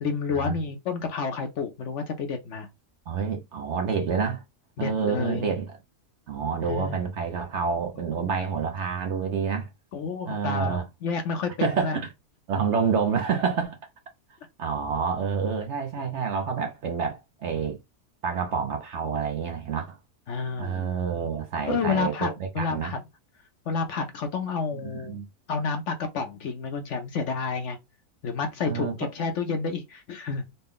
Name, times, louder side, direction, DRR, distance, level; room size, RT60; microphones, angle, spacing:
voice 1, 0.0-2.7 4.8-5.5 6.6-7.0 8.0-8.3 9.9-12.0 16.0-16.3 20.3-20.9 21.7-23.0 23.7-25.2 25.5-27.8 28.2-30.5, left 5 dB, 60° left, 0.8 m, -30 dB
voice 2, 3.1-4.4 4.8-5.7 6.3-9.7 10.3-10.9 11.6-12.1 12.5-13.8 14.6-17.8 18.2-20.0 20.6-22.9 24.8-25.3 28.7-28.9, right 6 dB, 60° right, 0.8 m, -28 dB
4.1 x 2.2 x 3.6 m
omnidirectional pair, 1.6 m